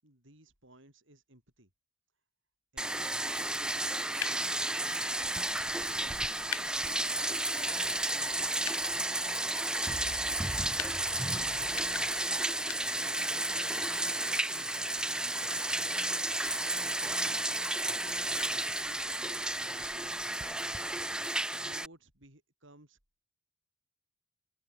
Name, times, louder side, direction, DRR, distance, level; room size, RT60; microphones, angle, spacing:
voice 1, 0.0-1.7 2.7-5.3 5.6-8.5 8.9-9.6 10.1-10.8 11.2-13.5 14.0-15.7 16.8-17.6 18.3-21.1 21.5-23.0, right 1 dB, 60° right, 6.8 m, -58 dB
Bathtub (filling or washing), 2.8-21.9, right 1 dB, 5° right, 0.3 m, -32 dB
sound 1, 3.4-4.1 5.3-5.6 6.0-6.2 6.7-9.1 9.4-9.5 9.7-10.2 10.7-10.9 11.6-12.2 12.6-13.2 13.5-14.0 14.9-15.1 15.4-16.1 16.4-17.3 18.3-18.7, left 11 dB, 60° left, 2.1 m, -56 dB
sound 2, 3.6-16.1, left 10 dB, 80° left, 1.9 m, -47 dB
open air
head